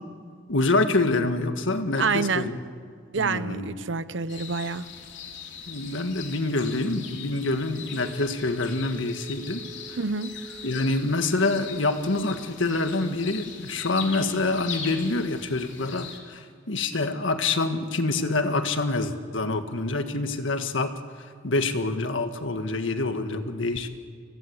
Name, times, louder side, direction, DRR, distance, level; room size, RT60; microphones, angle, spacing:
voice 1, 0.5-2.6 3.2-3.7 5.7-9.6 9.9-10.0 10.6-21.0 21.4-23.9, left 2 dB, 80° left, 7 dB, 1.7 m, -26 dB
voice 2, 2.0-2.5 3.1-4.9 10.0-10.3, right 4 dB, 75° right, 14 dB, 0.9 m, -27 dB
sound 1, 4.3-16.2, left 7 dB, 65° left, 3.2 m, -41 dB
Telephone, 8.0-11.0 11.4-11.5, right 4 dB, 20° right, 5.3 m, -45 dB
30.0 x 16.5 x 8.1 m, 2.2 s
head